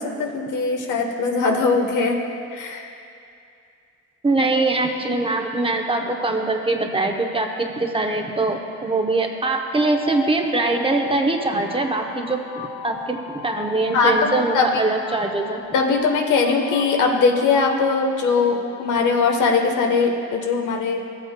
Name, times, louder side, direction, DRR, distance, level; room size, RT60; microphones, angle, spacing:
voice 1, 0.0-2.2 2.5-2.9 13.9-14.8 15.7-21.0, left 4 dB, 80° left, 2 dB, 1.1 m, -20 dB
voice 2, 4.2-13.2 13.4-15.6, right 2 dB, 20° right, 3 dB, 0.8 m, -22 dB
sound 1, 9.7-18.2, left 8 dB, 65° left, 0.6 m, -37 dB
15.0 x 8.3 x 2.2 m, 2.5 s
cardioid pair, 90°, 30 cm